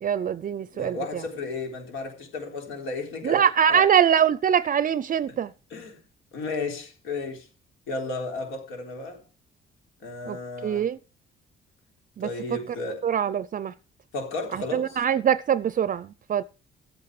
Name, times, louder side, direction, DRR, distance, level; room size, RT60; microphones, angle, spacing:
voice 1, 0.0-1.0 3.2-5.5 10.3-10.4 10.6-11.0 12.2-12.6 13.0-13.7 14.5-16.4, right 8 dB, 45° right, 0.5 m, -23 dB
voice 2, 0.7-3.4 3.7-3.9 5.3-5.4 5.7-6.0 6.3-7.5 7.9-9.2 10.0-10.9 12.2-13.1 14.1-15.0, left 3 dB, 85° left, 3.8 m, -33 dB
13.5 x 8.6 x 4.8 m
cardioid pair, 90°, 20 cm